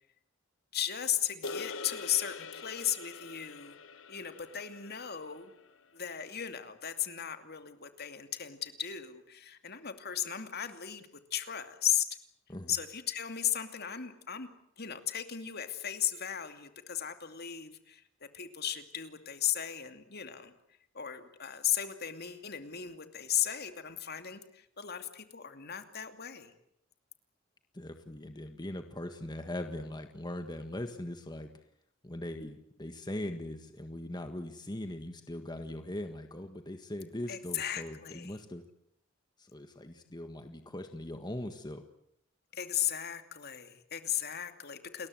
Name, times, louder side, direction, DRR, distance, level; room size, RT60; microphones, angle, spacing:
voice 1, 0.7-3.8 4.1-5.5 5.9-12.1 12.7-14.5 14.8-18.0 18.3-20.5 20.9-26.5 37.3-38.4 42.5-45.1, left 10 dB, 55° left, 8 dB, 2.6 m, -36 dB
sound 1, 1.4-5.9, left 4 dB, 80° left, 1.7 m, -44 dB
voice 2, 27.7-31.5 32.0-38.6 39.4-41.8, left 1 dB, 20° left, 7 dB, 1.6 m, -40 dB
30.0 x 21.0 x 7.9 m, 0.73 s
head